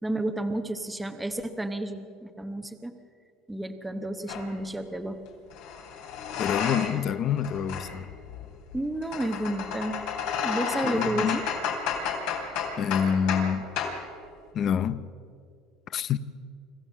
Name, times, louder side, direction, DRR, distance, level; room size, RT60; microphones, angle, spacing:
voice 1, 0.0-2.9 3.5-5.2 8.7-10.0 10.4-11.4, right 1 dB, 5° right, 0.9 m, -31 dB
sound 1, 4.3-4.5 5.5-7.1 7.4-13.5 13.8-14.0, left 6 dB, 70° left, 3.4 m, -32 dB
voice 2, 6.4-8.1 10.8-11.4 12.8-13.7 14.5-15.0 15.9-16.2, left 8 dB, 35° left, 0.6 m, -27 dB
25.5 x 14.5 x 7.3 m
cardioid pair, 150°, 0 cm